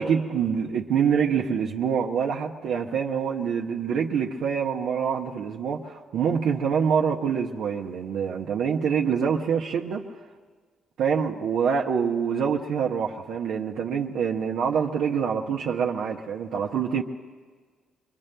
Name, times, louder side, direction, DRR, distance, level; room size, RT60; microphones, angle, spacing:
voice 1, 0.0-10.1 11.0-17.0, right 7 dB, 75° right, 0 dB, 0.7 m, -25 dB
25.0 x 23.0 x 2.2 m, 1.5 s
cardioid pair, 90°, 0 cm